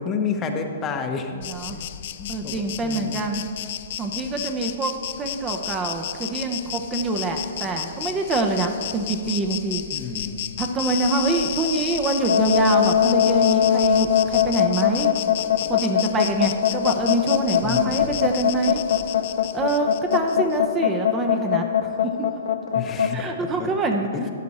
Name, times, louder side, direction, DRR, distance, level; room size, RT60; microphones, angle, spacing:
voice 1, 0.0-1.3 1.7-1.9 2.2-2.5 2.8-3.2 9.9-10.5 17.6-18.0 22.7-23.7 24.1-24.3, left 5 dB, 20° left, 5 dB, 0.8 m, -30 dB
Insect, 1.4-20.6, left 12 dB, 50° left, 0.4 m, -33 dB
voice 2, 1.4-1.8 2.3-3.4 4.0-4.9 5.2-9.8 10.6-15.1 15.7-18.8 19.5-21.6 22.0-22.1 23.1-24.3, right 3 dB, 20° right, 4 dB, 0.7 m, -25 dB
sound 1, 12.2-23.1, left 9 dB, 80° left, 0.8 m, -20 dB
12.5 x 8.4 x 4.2 m, 2.3 s
hypercardioid pair, 150°, 0 cm